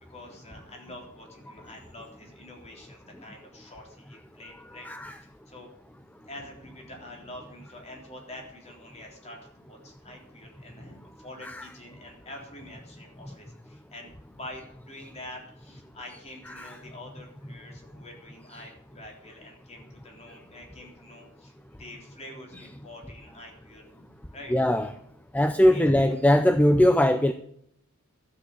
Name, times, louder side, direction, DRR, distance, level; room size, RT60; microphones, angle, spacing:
voice 1, 0.1-4.9 5.5-24.5 25.7-25.8, left 1 dB, 30° left, 1 dB, 3.6 m, -46 dB
voice 2, 4.8-5.2 11.4-11.6 16.6-16.7 24.5-24.9 25.3-27.3, left 1 dB, 5° left, 10 dB, 0.5 m, -21 dB
12.5 x 8.3 x 8.3 m, 0.72 s
head